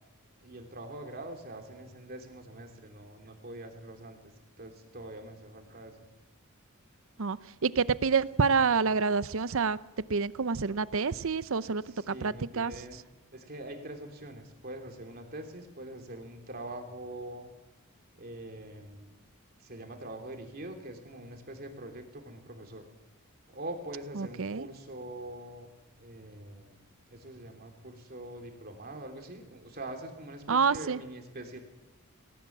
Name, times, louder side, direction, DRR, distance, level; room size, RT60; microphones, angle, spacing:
voice 1, 0.4-4.3 4.6-6.0 11.9-13.0 13.3-17.5 18.1-19.1 19.6-22.9 23.5-25.7 26.0-26.8 27.1-31.6, right 1 dB, 45° right, 4 dB, 3.2 m, -43 dB
voice 2, 7.2-12.7 24.1-24.7 30.5-31.0, right 5 dB, 65° right, 16 dB, 0.7 m, -28 dB
19.0 x 18.5 x 7.4 m, 1.1 s
head